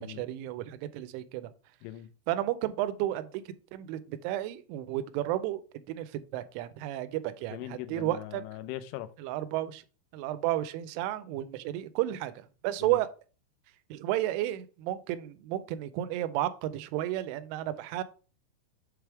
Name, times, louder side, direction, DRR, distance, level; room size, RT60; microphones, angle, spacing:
voice 1, 0.0-1.5 2.3-3.4 3.7-5.6 5.9-8.4 9.2-9.8 10.1-13.1 13.9-18.0, right 14 dB, 85° right, 3.1 m, -32 dB
voice 2, 7.5-9.1 12.8-13.0, left 14 dB, 85° left, 3.1 m, -40 dB
7.4 x 3.4 x 4.5 m
omnidirectional pair, 5.5 m